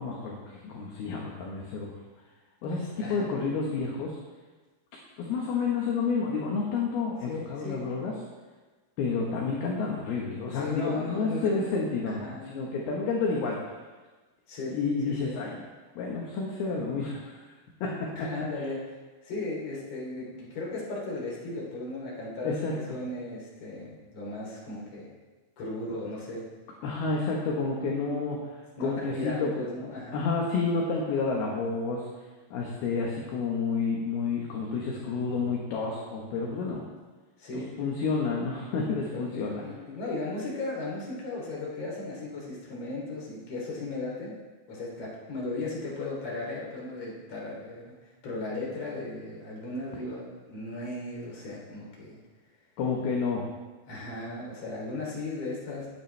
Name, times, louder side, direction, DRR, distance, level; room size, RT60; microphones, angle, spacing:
voice 1, 0.0-1.9 2.6-4.2 5.2-8.1 9.0-13.6 14.7-15.6 16.0-17.4 17.8-18.3 18.6-18.7 22.4-22.8 26.8-28.5 28.8-29.5 30.1-32.1 32.5-36.9 37.8-39.6 52.8-53.4, left 4 dB, 65° left, -2 dB, 2.7 m, -30 dB
voice 2, 2.6-3.3 7.3-7.9 10.5-11.7 12.0-12.5 14.5-14.8 15.0-15.3 18.2-18.8 19.2-22.5 22.9-25.1 25.6-26.5 28.1-28.2 28.8-30.2 37.4-37.7 39.1-44.4 44.7-52.2 53.9-55.9, left 2 dB, 35° left, -4 dB, 3.8 m, -36 dB
19.5 x 10.0 x 3.4 m, 1.3 s
omnidirectional pair, 5.9 m